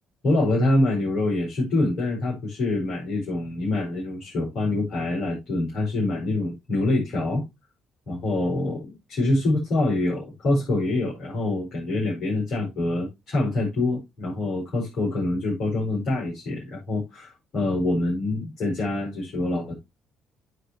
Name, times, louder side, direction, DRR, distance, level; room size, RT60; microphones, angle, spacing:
voice 1, 0.2-7.4 8.1-19.8, left 2 dB, 55° left, 5.4 m, -25 dB
15.5 x 5.1 x 3.0 m
figure-of-eight pair, 45°, 0 cm